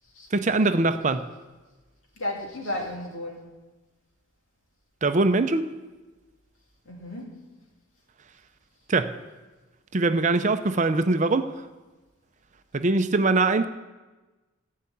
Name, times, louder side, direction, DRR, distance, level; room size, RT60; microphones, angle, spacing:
voice 1, 0.3-1.3 5.0-5.6 8.9-9.1 9.9-11.5 12.7-13.7, right 3 dB, 35° right, 9 dB, 0.6 m, -22 dB
voice 2, 2.2-3.5 6.8-7.4, left 1 dB, 75° left, -1 dB, 2.7 m, -33 dB
14.5 x 5.6 x 8.6 m, 1.2 s
head